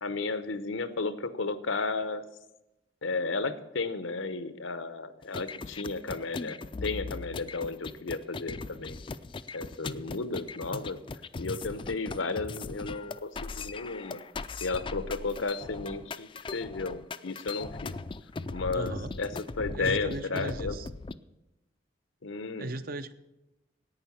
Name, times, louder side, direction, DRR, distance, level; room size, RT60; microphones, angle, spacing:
voice 1, 0.0-2.2 3.0-9.0 9.5-11.0 11.4-14.2 14.6-17.9 18.5-19.3 19.6-20.8 22.2-22.7, left 3 dB, 90° left, 12 dB, 0.9 m, -33 dB
sound 1, 5.2-21.1, left 3 dB, 25° left, 0.3 m, -39 dB
voice 2, 18.7-19.1 19.7-20.9 22.6-23.1, right 2 dB, 50° right, 12 dB, 0.6 m, -37 dB
11.0 x 9.0 x 7.1 m, 0.95 s
head